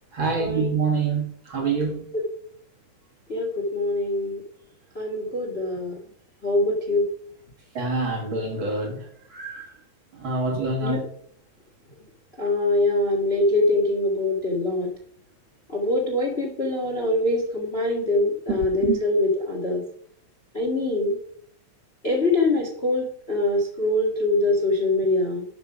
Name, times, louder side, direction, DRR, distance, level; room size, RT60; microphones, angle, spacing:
voice 1, 0.1-2.1 7.7-9.8 10.1-11.0 18.5-19.0, right 4 dB, 45° right, 2.2 m, -26 dB
voice 2, 3.3-4.4 4.9-5.9 6.4-7.1 10.8-11.0 12.4-14.9 15.7-19.8 20.5-21.2 22.0-25.4, left 2 dB, 25° left, 1.4 m, -23 dB
11.5 x 5.5 x 5.0 m
omnidirectional pair, 3.4 m